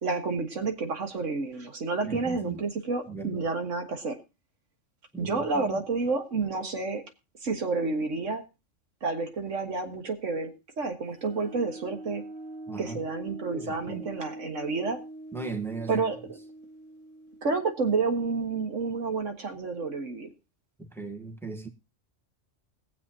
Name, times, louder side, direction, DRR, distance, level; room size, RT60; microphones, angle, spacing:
voice 1, 0.0-4.2 5.2-7.0 7.4-8.4 9.0-10.5 10.8-12.2 12.8-15.0 15.9-16.2 17.4-20.3, right 4 dB, 85° right, 1.9 m, -30 dB
voice 2, 2.0-2.6 3.1-3.4 5.1-5.8 12.7-13.0 13.5-14.1 15.3-16.0 20.8-21.7, right 3 dB, ahead, 1.2 m, -37 dB
sound 1, 11.1-18.6, right 1 dB, 45° right, 2.2 m, -44 dB
21.5 x 7.4 x 2.8 m
omnidirectional pair, 1.3 m